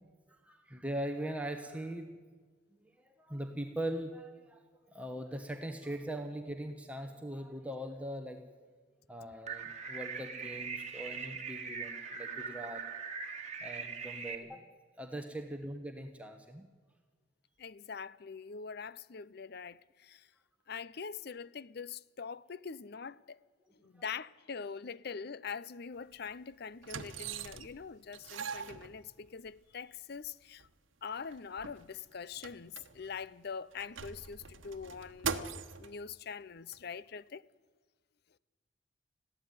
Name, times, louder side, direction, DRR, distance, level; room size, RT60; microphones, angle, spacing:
voice 1, 0.3-2.1 2.8-4.6 4.9-8.4 9.1-12.8 13.6-14.7 15.0-16.7, right 1 dB, 5° right, 1.3 m, -41 dB
sound 1, 9.5-14.3, right 6 dB, 35° right, 1.9 m, -41 dB
voice 2, 17.6-20.3 20.7-23.4 23.8-30.7 31.0-37.5, left 6 dB, 55° left, 0.6 m, -43 dB
sound 2, 26.0-26.1 26.8-27.8 28.1-29.5 30.2-30.3 30.6-30.7 31.1-33.3 33.7-35.9 36.7-36.8, right 6 dB, 80° right, 1.2 m, -41 dB
21.5 x 15.0 x 9.5 m
head